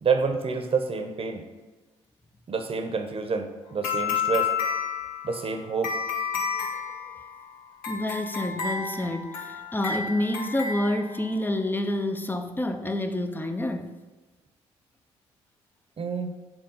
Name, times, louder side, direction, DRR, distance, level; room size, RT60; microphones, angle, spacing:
voice 1, 0.0-1.4 2.5-4.5 5.2-5.9 16.0-16.3, right 5 dB, 40° right, 6 dB, 1.1 m, -28 dB
sound 1, 3.8-11.5, left 6 dB, 65° left, 1.3 m, -31 dB
voice 2, 7.9-14.0, left 1 dB, 15° left, 8 dB, 0.8 m, -28 dB
8.2 x 4.2 x 5.7 m, 1.2 s
hypercardioid pair, 50°, 15 cm